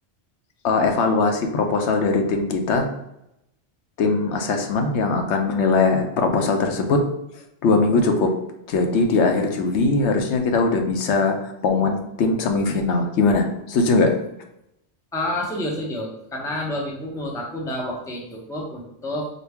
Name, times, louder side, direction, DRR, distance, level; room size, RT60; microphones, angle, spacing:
voice 1, 0.6-2.9 4.0-7.0 7.6-8.3 8.7-11.4 11.6-14.1, left 3 dB, 80° left, 4 dB, 0.9 m, -20 dB
voice 2, 15.1-19.3, left 1 dB, 5° left, -2 dB, 0.5 m, -29 dB
4.1 x 2.2 x 3.4 m, 0.83 s
omnidirectional pair, 1.2 m